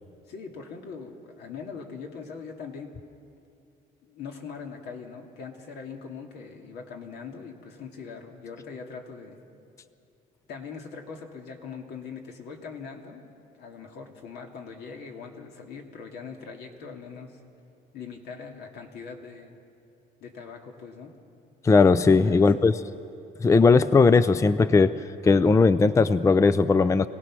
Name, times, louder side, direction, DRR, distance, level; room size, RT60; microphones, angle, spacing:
voice 1, 0.3-2.9 4.0-9.4 10.5-17.4 17.9-19.6 20.2-21.1 22.1-22.6, left 5 dB, 75° left, 2 dB, 2.3 m, -41 dB
voice 2, 21.6-22.7 23.4-27.1, left 4 dB, 20° left, 14 dB, 0.4 m, -18 dB
26.0 x 17.5 x 6.1 m, 2.6 s
cardioid pair, 110°, 17 cm